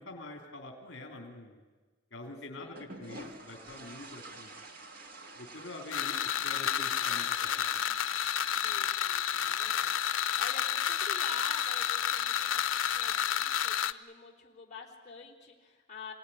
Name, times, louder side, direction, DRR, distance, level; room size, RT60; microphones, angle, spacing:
voice 1, 0.0-1.6 2.1-4.5 5.3-7.8, left 2 dB, 65° left, 2 dB, 3.2 m, -46 dB
sound 1, 2.8-13.3, right 2 dB, 50° right, 1.9 m, -51 dB
sound 2, 5.9-13.9, left 9 dB, 90° left, 0.7 m, -30 dB
voice 2, 8.5-16.1, left 4 dB, 35° left, -2 dB, 3.6 m, -47 dB
27.0 x 17.5 x 10.0 m, 1.4 s
head